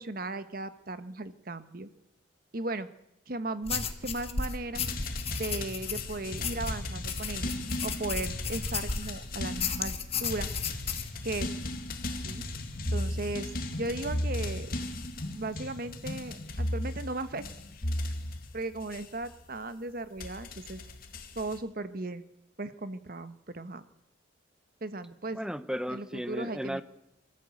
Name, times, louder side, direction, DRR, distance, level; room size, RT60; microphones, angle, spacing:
voice 1, 0.0-1.9 2.5-2.9 3.3-4.8 5.3-10.8 11.2-11.7 12.2-12.4 12.9-14.7 15.3-17.4 18.5-20.8 21.3-22.2 22.6-23.8 24.8-25.4 25.9-26.8, right 2 dB, 45° right, 12 dB, 1.1 m, -37 dB
sound 1, 3.6-9.2 9.6-11.1, left 5 dB, 30° left, 1.5 m, -34 dB
sound 2, 4.7-19.5 20.2-21.6, left 1 dB, 45° left, 2.2 m, -36 dB
voice 2, 25.3-26.8, equal, 5° right, 12 dB, 0.9 m, -35 dB
24.5 x 14.0 x 8.5 m, 0.87 s
head